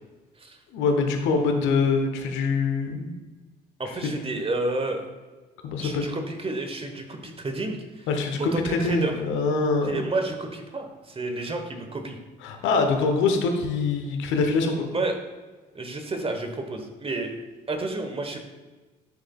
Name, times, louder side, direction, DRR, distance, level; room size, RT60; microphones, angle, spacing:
voice 1, 0.7-3.1 3.8-4.1 5.6-6.1 8.1-10.0 12.4-14.9, left 4 dB, 65° left, 5 dB, 1.0 m, -24 dB
voice 2, 3.8-5.0 5.8-8.1 8.4-9.1 9.9-12.2 14.9-15.1 15.7-17.3 17.7-18.4, right 2 dB, 25° right, 5 dB, 1.3 m, -30 dB
9.9 x 6.4 x 2.4 m, 1.3 s
hypercardioid pair, 50°, 21 cm